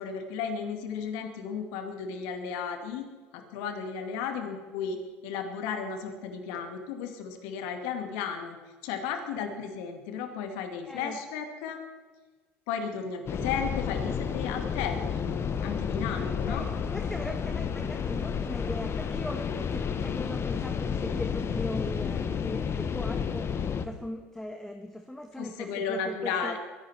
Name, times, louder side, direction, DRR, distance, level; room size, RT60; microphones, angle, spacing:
voice 1, 0.0-3.1 3.3-8.6 8.8-11.8 12.7-15.3 15.6-16.7 25.4-26.6, left 6 dB, 70° left, 6 dB, 2.4 m, -34 dB
voice 2, 10.9-11.2 16.5-26.6, left 1 dB, 5° left, 4 dB, 1.5 m, -39 dB
sound 1, 13.3-23.9, left 6 dB, 35° left, 1.4 m, -31 dB
23.0 x 11.0 x 4.5 m, 1.4 s
hypercardioid pair, 75°, 7 cm